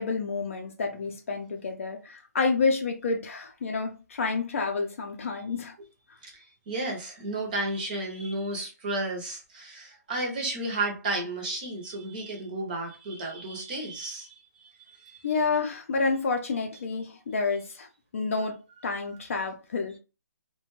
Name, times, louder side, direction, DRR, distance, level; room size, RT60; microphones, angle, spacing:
voice 1, 0.0-5.7 15.2-17.9 18.1-20.0, left 4 dB, 50° left, 0.5 m, -29 dB
voice 2, 6.2-15.3, right 2 dB, 30° right, 0.6 m, -33 dB
2.4 x 2.2 x 3.0 m
hypercardioid pair, 165°, 10 cm